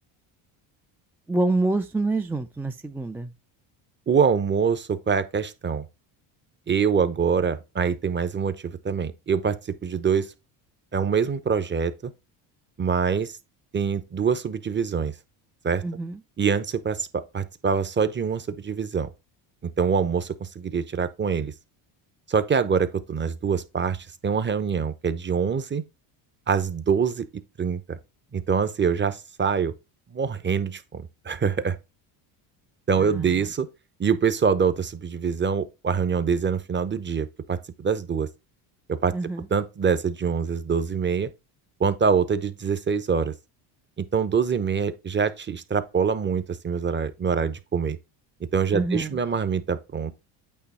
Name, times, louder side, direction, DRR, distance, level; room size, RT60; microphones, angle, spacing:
voice 1, 1.3-3.3 15.8-16.2 33.0-33.5 39.1-39.5 48.7-49.2, right 2 dB, 5° right, 0.4 m, -27 dB
voice 2, 4.1-5.8 6.7-10.3 10.9-12.1 12.8-13.4 13.7-15.1 15.6-15.8 16.4-17.1 17.3-19.1 19.6-21.5 22.3-25.8 26.5-27.2 27.6-28.0 28.3-29.7 30.1-31.8 32.9-33.7 34.0-38.3 38.9-39.1 39.5-41.3 41.8-43.3 44.0-48.0 48.5-50.1, right 6 dB, 20° right, 0.8 m, -25 dB
8.7 x 3.0 x 4.2 m
supercardioid pair, 90°, 50 cm